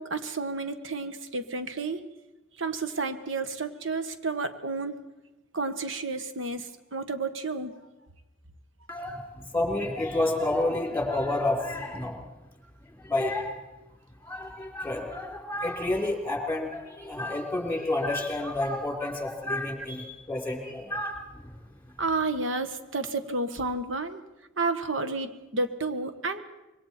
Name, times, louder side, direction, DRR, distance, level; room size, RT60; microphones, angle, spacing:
voice 1, 0.0-2.0 2.6-4.9 5.5-7.8 22.0-24.2 24.6-26.4, right 3 dB, 80° right, 9 dB, 1.5 m, -31 dB
voice 2, 8.9-12.2 13.0-13.6 14.2-21.6, left 2 dB, 10° left, 2 dB, 3.6 m, -30 dB
26.0 x 23.0 x 4.5 m, 1.0 s
head